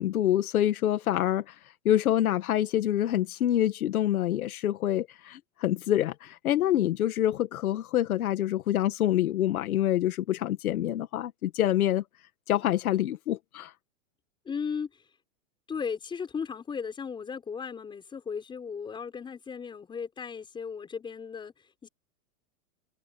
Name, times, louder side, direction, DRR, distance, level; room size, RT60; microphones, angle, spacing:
voice 1, 0.0-1.5 1.9-12.0 12.5-13.7, left 12 dB, 75° left, 2.1 m, -26 dB
voice 2, 14.5-14.9 15.7-21.5 21.8-21.9, left 6 dB, 10° left, 5.8 m, -36 dB
supercardioid pair, 170°, 43 cm